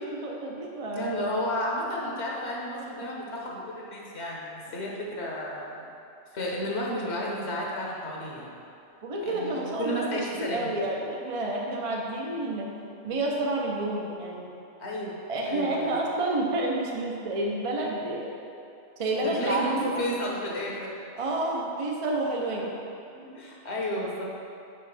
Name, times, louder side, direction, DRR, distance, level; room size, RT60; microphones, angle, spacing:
voice 1, 0.0-1.1 9.0-12.7 13.0-14.5 15.3-18.4 19.0-19.7 21.2-22.8, right 2 dB, 35° right, -2 dB, 0.6 m, -29 dB
voice 2, 0.9-5.9 6.3-8.5 9.3-10.7 14.8-15.2 15.5-16.0 19.2-21.0 22.6-22.7 23.1-24.3, equal, 70° left, -3 dB, 1.4 m, -32 dB
5.4 x 5.2 x 5.4 m, 2.7 s
omnidirectional pair, 1.2 m